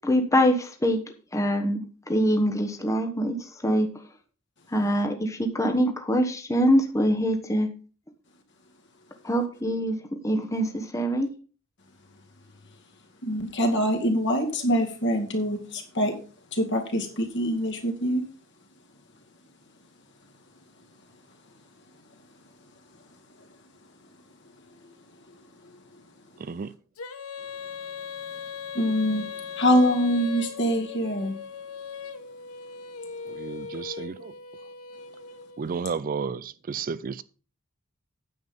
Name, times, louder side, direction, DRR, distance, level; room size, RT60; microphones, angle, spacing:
voice 1, 0.0-1.0 1.3-3.4 3.6-3.9 4.7-7.7 9.2-11.3, equal, 15° left, 1.1 m, -24 dB
voice 2, 13.2-16.1 16.5-18.2 28.7-29.2 29.6-31.3, equal, 55° left, 2.2 m, -24 dB
voice 3, 26.4-26.7 33.3-34.3 35.6-37.2, right 5 dB, 40° right, 0.4 m, -32 dB
Female singing, 27.0-35.8, left 6 dB, 85° left, 0.9 m, -39 dB
9.5 x 7.4 x 5.2 m
head